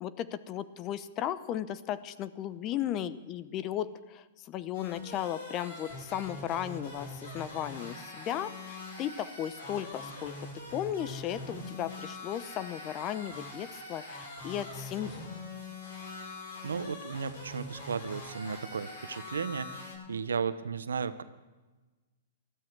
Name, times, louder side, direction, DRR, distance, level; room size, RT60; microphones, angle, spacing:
voice 1, 0.0-10.3 10.7-15.3, left 11 dB, 35° left, 15 dB, 0.7 m, -36 dB
sound 1, 4.7-19.9, left 2 dB, 65° left, 6.7 m, -43 dB
voice 2, 16.6-21.2, right 6 dB, 90° right, 13 dB, 0.9 m, -35 dB
20.0 x 13.0 x 4.6 m, 1.2 s
hypercardioid pair, 130°, 0 cm